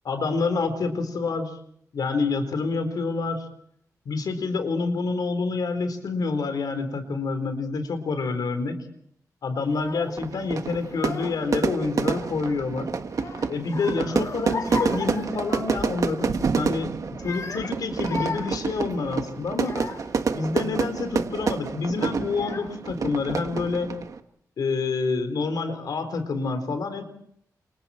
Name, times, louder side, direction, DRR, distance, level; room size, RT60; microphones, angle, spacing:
voice 1, 0.0-1.6 1.9-3.5 4.1-8.8 9.4-12.9 13.5-19.8 20.3-23.9 24.6-27.0, left 4 dB, 85° left, 8 dB, 4.2 m, -28 dB
Child speech kid speaking / Crying sobbing, 9.7-10.2 10.9-11.5 11.8-12.7 13.1-16.0 16.3-16.6 17.1-20.2 20.8-21.2 22.0-22.1 22.3-23.0, left 5 dB, 55° left, 2.1 m, -37 dB
Fire / Fireworks, 10.2-24.2, right 5 dB, 60° right, 1.5 m, -28 dB
29.5 x 27.5 x 4.5 m, 0.67 s
wide cardioid pair, 145°, 6 cm